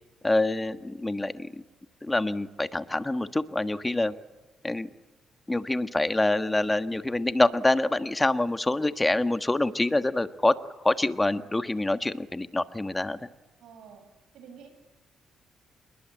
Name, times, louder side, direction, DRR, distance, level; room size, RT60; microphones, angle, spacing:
voice 1, 0.2-1.6 2.0-4.1 4.6-4.9 5.5-10.5 10.8-13.2, left 2 dB, 15° left, 11 dB, 1.4 m, -26 dB
voice 2, 13.6-14.0 14.3-14.7, right 7 dB, 80° right, 7 dB, 8.0 m, -48 dB
27.0 x 21.5 x 8.8 m, 1.1 s
cardioid pair, 90°, 0 cm